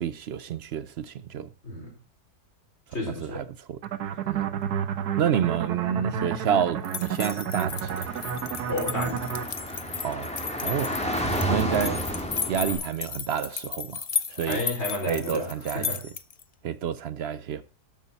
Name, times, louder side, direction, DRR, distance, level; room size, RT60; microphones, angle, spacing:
voice 1, 0.0-1.5 3.2-3.8 4.2-4.5 5.2-8.1 10.0-10.3 10.6-11.0 11.5-12.0 12.5-14.6 15.1-15.9 16.6-17.6, right 8 dB, 60° right, 0.6 m, -29 dB
voice 2, 1.6-2.0 2.9-3.4 8.7-9.2 14.4-16.0, left 1 dB, 40° left, 5.2 m, -31 dB
sound 1, 3.8-9.5, right 8 dB, 80° right, 1.5 m, -31 dB
sound 2, 6.8-16.4, left 6 dB, 60° left, 0.3 m, -34 dB
Car / Traffic noise roadway noise, 7.7-12.8, equal, 5° left, 2.1 m, -31 dB
12.5 x 7.4 x 4.0 m
omnidirectional pair, 1.7 m